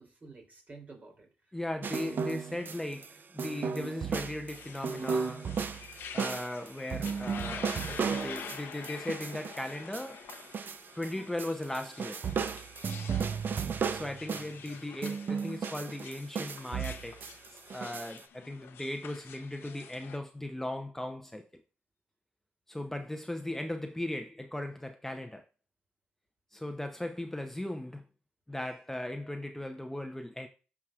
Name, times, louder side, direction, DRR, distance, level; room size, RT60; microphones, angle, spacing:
voice 1, 0.0-1.5 13.3-13.8, right 3 dB, 40° right, 3.2 m, -52 dB
voice 2, 1.5-5.5 6.1-10.2 10.9-12.2 13.9-21.6 22.7-25.4 26.5-28.0 28.5-30.5, left 1 dB, 10° left, 0.7 m, -38 dB
sound 1, 1.8-3.1 3.4-11.1 11.4-14.7 15.0-18.2, right 6 dB, 60° right, 0.6 m, -35 dB
sound 2, 4.5-20.2, left 7 dB, 85° left, 0.8 m, -48 dB
13.0 x 4.8 x 2.4 m
cardioid pair, 65°, 4 cm